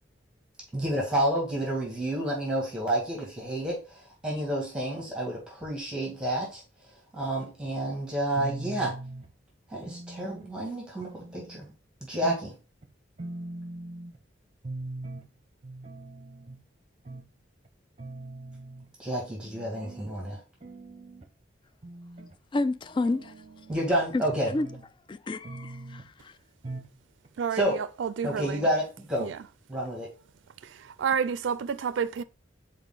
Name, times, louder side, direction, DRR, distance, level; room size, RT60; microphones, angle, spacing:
voice 1, 0.7-6.6 7.1-9.0 9.7-11.7 12.0-12.6 19.0-20.4 23.7-24.5 27.5-27.8 28.2-29.3 29.7-30.1, right 1 dB, 5° right, 2.2 m, -30 dB
sound 1, 8.3-9.3 9.8-10.6 11.0-11.7 12.2-12.5 12.8-12.9 13.2-14.2 14.6-15.3 15.6-16.6 17.1-17.3 17.7-17.8 18.0-18.9 19.4-20.1 20.6-21.3 21.8-22.4 22.8-23.9 24.3-24.9 25.4-26.1 26.6-27.0 27.3-27.4 27.6-27.7, right 2 dB, 35° right, 0.8 m, -41 dB
voice 2, 22.5-23.3 24.5-24.7 25.1-26.3, left 2 dB, 25° left, 0.3 m, -30 dB
voice 3, 27.4-28.7 29.2-29.4 30.6-32.2, right 6 dB, 85° right, 0.4 m, -30 dB
5.4 x 4.4 x 3.9 m
head